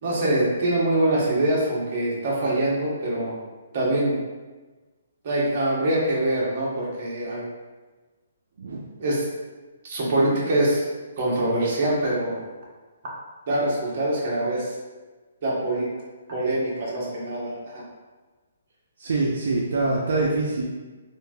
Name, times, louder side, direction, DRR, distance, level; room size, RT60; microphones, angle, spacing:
voice 1, 0.0-3.4 3.7-4.2 5.2-7.5 9.0-9.3 9.8-10.9 11.2-12.4 13.5-14.7 15.4-15.9 16.3-17.8, right 1 dB, 40° right, -5 dB, 0.8 m, -24 dB
voice 2, 19.0-20.6, right 3 dB, 70° right, -3 dB, 0.4 m, -24 dB
3.0 x 2.5 x 2.2 m, 1.3 s
hypercardioid pair, 165°, 0 cm